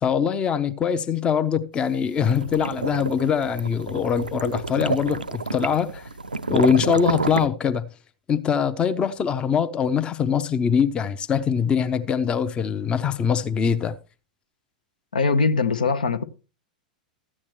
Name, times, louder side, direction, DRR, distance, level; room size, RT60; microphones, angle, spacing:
voice 1, 0.0-6.1 6.5-7.9 8.3-14.0, left 7 dB, 20° left, 0.6 m, -23 dB
sound 1, 1.9-7.5, right 3 dB, 85° right, 0.4 m, -29 dB
voice 2, 15.1-16.2, left 4 dB, 75° left, 0.8 m, -21 dB
13.5 x 8.5 x 3.2 m
figure-of-eight pair, 95°, 5 cm